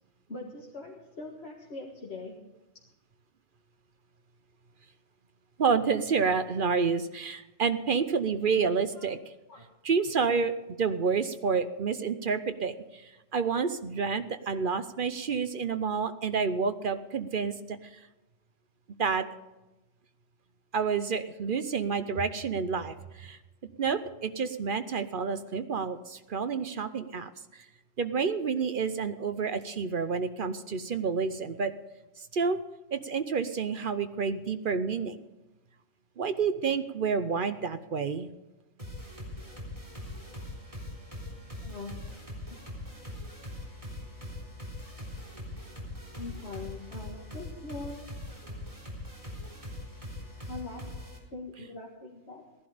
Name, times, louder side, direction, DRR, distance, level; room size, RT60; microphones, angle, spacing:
voice 1, 0.3-2.4 8.9-9.1 9.5-9.7 41.6-42.0 46.1-48.1 50.5-50.8 51.3-52.4, left 3 dB, 55° left, -2 dB, 2.0 m, -42 dB
voice 2, 5.6-9.2 9.8-17.9 19.0-19.3 20.7-23.4 23.8-27.6 28.0-31.7 32.2-32.6 32.9-35.2 36.2-38.3, right 5 dB, 50° right, 10 dB, 0.8 m, -29 dB
sound 1, 38.8-51.2, left 1 dB, 25° right, 3.9 m, -42 dB
17.0 x 11.0 x 5.0 m, 1.0 s
omnidirectional pair, 1.3 m